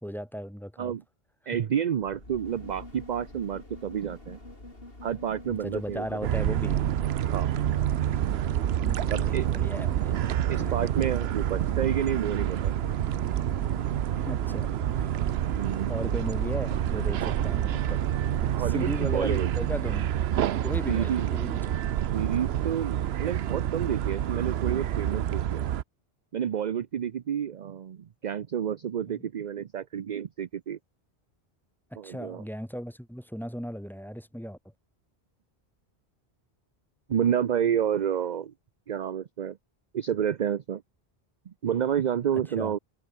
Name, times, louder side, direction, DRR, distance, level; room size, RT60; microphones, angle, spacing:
voice 1, 0.0-0.9 1.5-1.6 5.5-6.8 8.8-10.1 10.6-10.7 14.2-15.2 15.9-18.0 18.4-20.1 20.6-21.6 29.1-29.3 31.9-34.6 42.6-42.7, equal, ahead, 2.8 m, -36 dB
voice 2, 1.5-4.4 5.0-6.1 7.3-7.5 9.1-9.5 10.5-12.7 15.6-16.0 18.5-19.5 20.9-21.3 22.1-25.6 26.3-30.8 32.0-32.4 37.1-38.5 38.9-39.6 39.9-40.8 41.5-42.8, right 9 dB, 50° right, 0.7 m, -29 dB
sound 1, 2.0-19.3 19.7-19.8, left 2 dB, 60° left, 5.3 m, -46 dB
sound 2, 6.2-25.8, right 11 dB, 75° right, 0.9 m, -28 dB
omnidirectional pair, 1.1 m